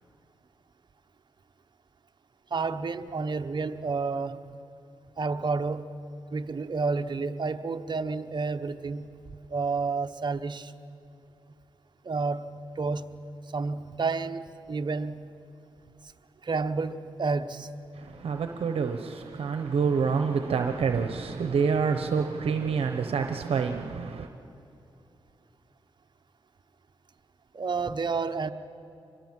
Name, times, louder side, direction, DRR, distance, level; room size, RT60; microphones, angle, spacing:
voice 1, 2.5-4.6 5.2-5.9 6.3-9.1 9.5-10.7 12.0-13.2 13.5-15.3 16.4-17.8 27.5-28.5, right 4 dB, 50° right, 1.0 m, -30 dB
voice 2, 17.9-24.3, right 5 dB, 75° right, 0.9 m, -27 dB
25.5 x 20.5 x 7.6 m
cardioid pair, 60°, 10 cm